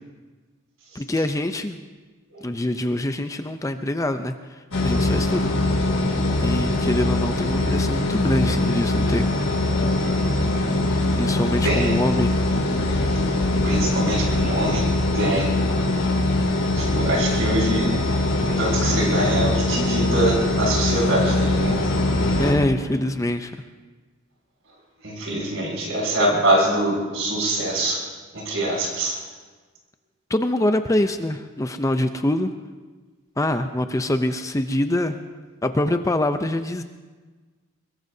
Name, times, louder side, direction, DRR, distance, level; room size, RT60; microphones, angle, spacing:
voice 1, 0.9-1.8 2.4-5.5 6.4-9.3 11.2-12.4 22.4-23.5 30.3-32.5 33.4-35.2 35.6-36.8, left 1 dB, 15° left, 8 dB, 0.5 m, -24 dB
sound 1, 4.7-22.5, left 2 dB, 85° left, 2.8 m, -22 dB
voice 2, 11.6-11.9 13.6-15.5 16.8-17.9 18.4-21.8 25.0-28.0 28.3-29.2, right 1 dB, 65° right, -2 dB, 6.7 m, -24 dB
23.5 x 22.0 x 2.7 m, 1.4 s
head